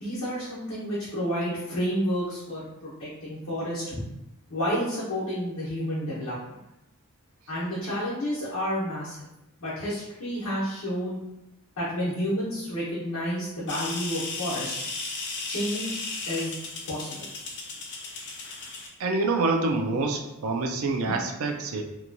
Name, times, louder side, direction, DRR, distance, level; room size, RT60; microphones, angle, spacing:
voice 1, 0.0-4.0 4.5-6.3 7.5-9.2 9.6-11.2 11.8-14.7 15.5-16.0 16.3-16.6 16.9-17.2 21.0-21.2, equal, 75° left, -10 dB, 0.9 m, -30 dB
sound 1, 13.7-18.9, left 3 dB, 55° left, 0.5 m, -35 dB
voice 2, 19.0-21.8, right 3 dB, 75° right, 3 dB, 0.4 m, -26 dB
2.9 x 2.2 x 2.5 m, 0.92 s
head